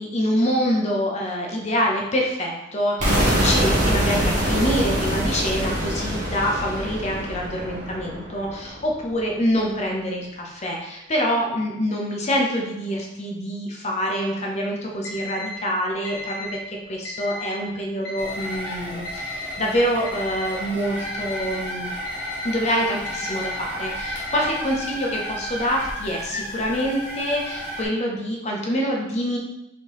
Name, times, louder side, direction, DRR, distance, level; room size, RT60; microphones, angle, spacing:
voice 1, 0.0-21.9 22.4-29.4, equal, 35° left, -1 dB, 0.7 m, -26 dB
sound 1, 3.0-8.9, equal, 40° right, 1.5 m, -24 dB
Alarm, 15.0-15.5 16.0-16.5 17.0-17.5 18.1-18.5 19.1-19.5 20.1-20.5 21.1-21.5 22.1-22.5 23.1-23.5 24.1-24.6, left 1 dB, 70° left, 1.2 m, -34 dB
sound 2, 18.2-27.8, equal, 10° right, 1.1 m, -33 dB
4.5 x 3.6 x 3.0 m, 0.88 s
head